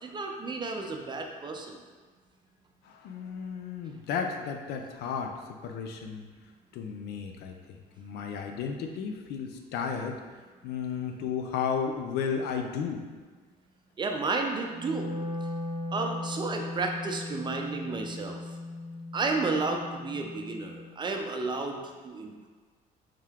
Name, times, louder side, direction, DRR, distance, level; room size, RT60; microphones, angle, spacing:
voice 1, 0.0-1.8 14.0-15.2 15.9-18.4 19.1-22.5, right 3 dB, 25° right, 2 dB, 0.5 m, -32 dB
voice 2, 2.9-6.3 6.7-10.2 10.6-13.0, left 6 dB, 80° left, 4 dB, 0.5 m, -33 dB
Wind instrument woodwind instrument, 14.7-20.9, left 2 dB, 25° left, 1.3 m, -38 dB
3.6 x 2.8 x 3.5 m, 1.5 s
cardioid pair, 110°, 17 cm